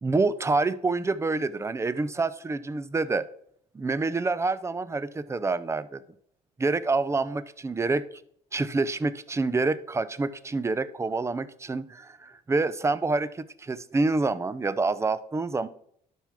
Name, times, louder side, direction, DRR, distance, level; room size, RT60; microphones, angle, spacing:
voice 1, 0.0-3.3 3.7-6.0 6.6-8.1 8.5-15.7, right 3 dB, 15° right, 16 dB, 0.5 m, -27 dB
12.0 x 5.9 x 3.5 m, 0.67 s
cardioid pair, 110°, 17 cm